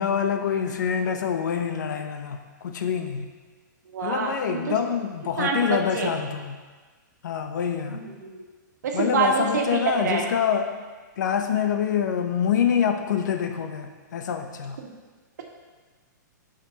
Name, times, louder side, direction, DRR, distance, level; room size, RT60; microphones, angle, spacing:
voice 1, 0.0-3.3 4.0-6.6 7.2-8.1 8.9-10.7 11.2-14.8, left 7 dB, 70° left, 6 dB, 0.8 m, -26 dB
voice 2, 3.9-4.6 5.4-6.1 8.1-8.4 8.8-9.8 10.0-10.2 14.8-14.9, right 4 dB, 65° right, 1 dB, 1.5 m, -26 dB
13.5 x 5.1 x 2.9 m, 1.4 s
hypercardioid pair, 170°, 10 cm